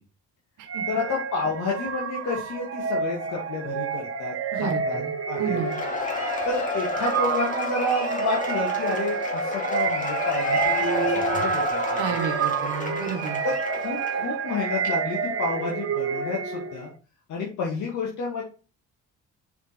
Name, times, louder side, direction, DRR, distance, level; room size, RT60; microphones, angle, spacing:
sound 1, 0.7-16.9, right 6 dB, 50° right, 1.4 m, -29 dB
voice 1, 0.9-5.0 5.3-5.6 6.4-12.1 13.4-16.9 17.3-18.4, left 3 dB, 80° left, -2 dB, 2.1 m, -30 dB
voice 2, 4.5-5.8 12.0-13.5, right 6 dB, 90° right, 8 dB, 1.4 m, -32 dB
Cheering / Applause / Crowd, 5.4-14.3, left 2 dB, 25° left, 2.3 m, -30 dB
6.7 x 4.9 x 4.3 m, 0.34 s
cardioid pair, 90°, 30 cm